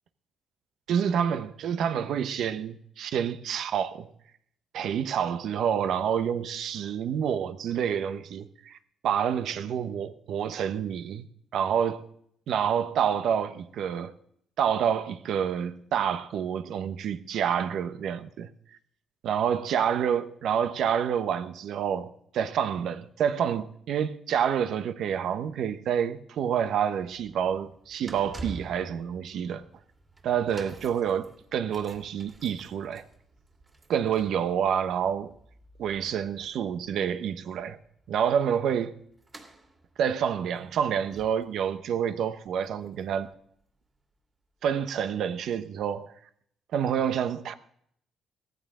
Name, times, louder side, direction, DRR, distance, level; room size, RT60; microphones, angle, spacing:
voice 1, 0.9-4.1 4.7-8.8 9.0-11.3 11.5-12.1 12.5-14.1 14.6-18.5 19.2-29.6 30.2-33.0 33.9-35.3 35.8-37.8 38.1-39.0 40.0-43.3 44.6-46.1 46.7-47.5, right 8 dB, 75° right, 0.9 m, -28 dB
sound 1, 27.0-44.0 44.6-44.7, right 2 dB, 25° right, 2.5 m, -49 dB
16.5 x 14.5 x 3.7 m
cardioid pair, 90°, 0 cm